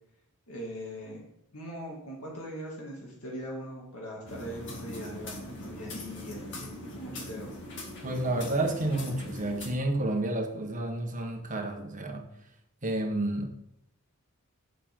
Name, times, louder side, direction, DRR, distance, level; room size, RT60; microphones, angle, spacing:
voice 1, 0.5-1.3 1.5-7.5, equal, 70° left, -3 dB, 2.6 m, -41 dB
sound 1, 4.3-9.7, left 1 dB, 55° left, 2.2 m, -41 dB
voice 2, 8.0-12.3 12.8-13.6, right 2 dB, 35° right, 3 dB, 1.4 m, -30 dB
9.0 x 7.7 x 3.8 m, 0.79 s
head